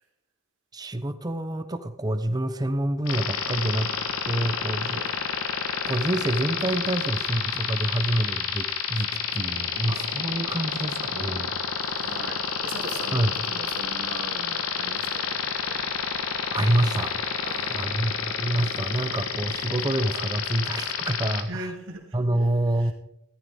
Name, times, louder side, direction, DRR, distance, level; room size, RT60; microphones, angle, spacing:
voice 1, 0.7-4.0 4.2-5.0 5.9-11.5 13.1-13.3 16.5-17.1 17.7-21.6 22.1-22.9, right 1 dB, 20° right, 9 dB, 0.8 m, -27 dB
sound 1, 3.1-21.4, left 7 dB, 75° left, 1.3 m, -29 dB
voice 2, 11.6-15.9 17.4-17.9 21.5-22.2 22.8-22.9, right 2 dB, 60° right, 1 dB, 2.6 m, -39 dB
15.0 x 13.5 x 3.6 m, 0.81 s
head